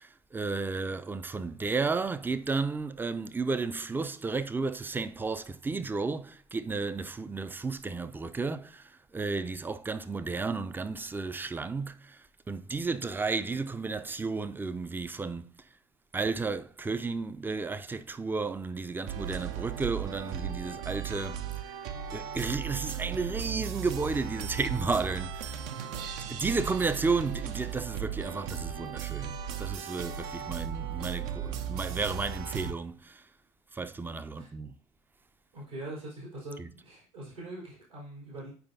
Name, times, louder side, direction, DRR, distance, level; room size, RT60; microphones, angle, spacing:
voice 1, 0.0-12.2 12.5-15.5 16.1-21.5 22.1-25.6 26.4-33.2 33.7-34.7 36.6-36.7, right 4 dB, 10° right, 0.5 m, -33 dB
sound 1, 19.1-32.7, right 8 dB, 55° right, 0.7 m, -36 dB
voice 2, 25.7-26.1 34.4-34.5 35.5-38.5, right 1 dB, 80° right, 3.8 m, -43 dB
9.1 x 5.0 x 2.7 m
figure-of-eight pair, 60°, 16 cm